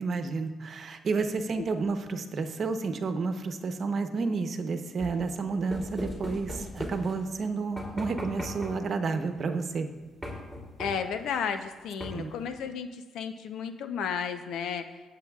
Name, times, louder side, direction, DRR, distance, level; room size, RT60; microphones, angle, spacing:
voice 1, 0.0-9.9 12.1-12.3, right 4 dB, 50° right, 7 dB, 0.9 m, -31 dB
sound 1, 5.0-7.4 7.8-9.0 10.2-11.2 12.0-12.4, left 1 dB, 10° left, 3.1 m, -39 dB
voice 2, 10.8-14.8, left 7 dB, 80° left, 8 dB, 0.7 m, -33 dB
21.5 x 7.7 x 2.4 m, 1.2 s
cardioid pair, 90°, 0 cm